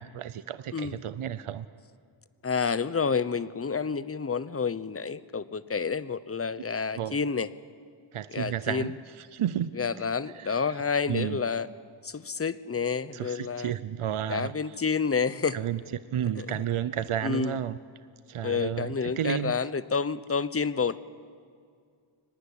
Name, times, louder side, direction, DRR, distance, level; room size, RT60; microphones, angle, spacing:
voice 1, 0.0-1.7 7.0-7.2 8.1-10.1 10.3-10.6 11.1-11.4 13.1-14.5 15.5-15.8 16.1-17.8 18.3-19.5, right 10 dB, 80° right, 14 dB, 0.7 m, -32 dB
voice 2, 2.4-7.5 8.3-8.9 9.7-11.7 12.0-13.7 14.3-15.6 16.4-16.6 17.2-17.5 18.4-21.0, left 5 dB, 30° left, 16 dB, 0.8 m, -29 dB
24.0 x 18.5 x 9.9 m, 2.2 s
wide cardioid pair, 95°, 50 cm